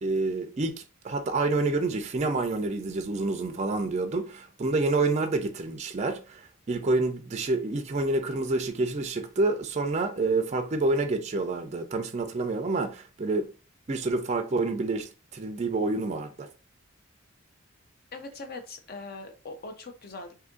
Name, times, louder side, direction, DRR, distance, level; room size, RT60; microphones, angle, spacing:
voice 1, 0.0-13.5 13.9-16.5, right 3 dB, 35° right, 0.4 m, -28 dB
voice 2, 18.1-20.4, left 3 dB, 45° left, 0.6 m, -41 dB
2.7 x 2.5 x 3.7 m
head